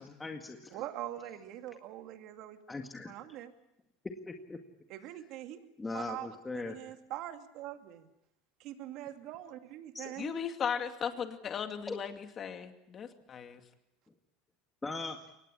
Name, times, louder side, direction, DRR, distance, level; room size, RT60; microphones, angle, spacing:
voice 1, 0.0-0.8 2.7-3.1 4.3-4.6 5.8-6.8 9.9-10.1 11.9-12.0 14.1-14.2 14.8-15.2, left 3 dB, 15° left, 3 dB, 1.9 m, -40 dB
voice 2, 0.7-2.6 3.1-3.5 4.9-5.6 5.9-6.3 6.7-8.1 8.6-10.3, right 13 dB, 55° right, 7 dB, 2.3 m, -43 dB
voice 3, 10.2-13.6, left 7 dB, 35° left, 6 dB, 2.3 m, -37 dB
23.5 x 19.5 x 8.6 m, 0.84 s
supercardioid pair, 125°, 0 cm